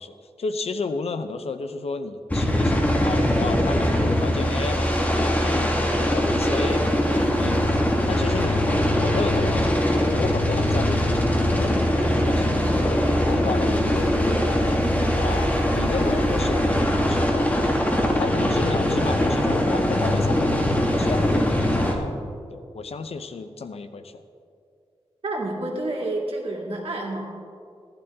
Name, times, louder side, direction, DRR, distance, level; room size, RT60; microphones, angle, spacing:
voice 1, 0.0-7.7 8.1-14.5 15.2-17.5 18.1-22.1 22.5-24.2, left 4 dB, 75° left, 9 dB, 0.7 m, -33 dB
sound 1, 2.3-21.9, left 1 dB, 15° left, 1.6 m, -22 dB
voice 2, 25.2-27.2, right 2 dB, 65° right, -2 dB, 2.4 m, -29 dB
16.0 x 11.5 x 3.6 m, 2.4 s
wide cardioid pair, 85°, 10 cm